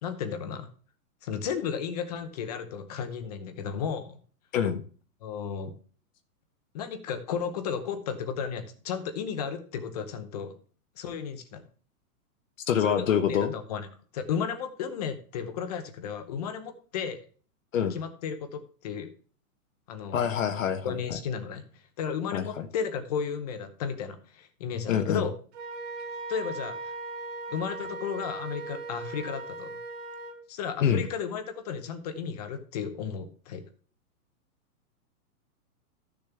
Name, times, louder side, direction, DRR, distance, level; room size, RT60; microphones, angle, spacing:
voice 1, 0.0-0.7 1.2-4.2 5.2-5.7 6.7-10.5 11.0-11.7 12.8-13.9 14.1-17.2 17.8-19.1 19.9-20.2 20.8-21.6 22.0-25.3 26.3-26.9 27.5-29.7 30.5-33.6, left 7 dB, 25° left, 9 dB, 0.9 m, -34 dB
voice 2, 12.7-13.5 17.7-18.0 20.1-21.0 22.3-22.7 24.9-25.3 30.8-31.1, left 8 dB, 55° left, 7 dB, 1.0 m, -26 dB
Wind instrument woodwind instrument, 25.5-30.4, right 3 dB, 45° right, 2.3 m, -38 dB
13.5 x 6.9 x 3.5 m, 0.41 s
hypercardioid pair, 175°, 46 cm